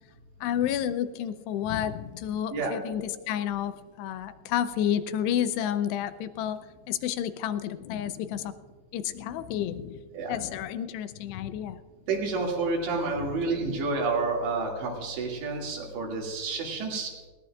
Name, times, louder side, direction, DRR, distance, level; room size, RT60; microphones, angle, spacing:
voice 1, 0.4-6.6 6.9-8.6 8.9-10.0 10.3-11.8, left 10 dB, 85° left, 12 dB, 2.6 m, -30 dB
voice 2, 12.1-17.1, right 3 dB, 85° right, -1 dB, 4.6 m, -29 dB
20.0 x 17.5 x 2.4 m, 1.4 s
omnidirectional pair, 4.9 m